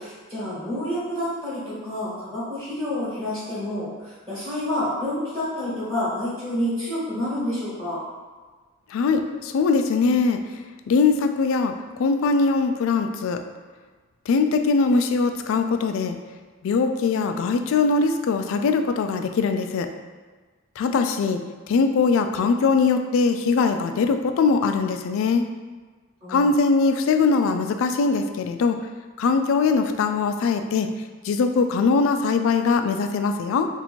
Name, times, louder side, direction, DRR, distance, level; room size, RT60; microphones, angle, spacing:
voice 1, 0.0-8.0 26.2-26.5, left 1 dB, 20° right, -11 dB, 1.2 m, -28 dB
voice 2, 8.9-10.4 10.9-13.4 14.3-16.2 16.6-19.9 20.8-21.4 21.7-25.4 26.3-28.8 29.2-30.9 31.2-33.7, left 4 dB, 65° left, 7 dB, 0.3 m, -21 dB
2.8 x 2.6 x 4.2 m, 1.4 s
head